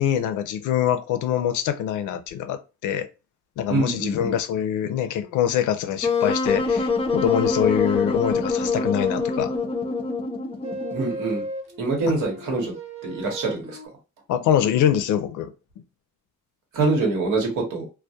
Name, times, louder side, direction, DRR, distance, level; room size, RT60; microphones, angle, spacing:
voice 1, 0.0-3.1 3.6-9.5 12.0-12.2 14.3-15.5, left 9 dB, 80° left, 0.5 m, -24 dB
voice 2, 3.7-4.4 10.9-11.4 11.8-12.7 13.0-13.8 16.7-17.9, right 3 dB, 90° right, 1.0 m, -25 dB
Wind instrument woodwind instrument, 6.0-11.1, left 4 dB, 20° left, 0.4 m, -24 dB
sound 1, 10.6-13.9, right 1 dB, 20° right, 0.8 m, -37 dB
2.2 x 2.1 x 2.6 m
cardioid pair, 90°, 30 cm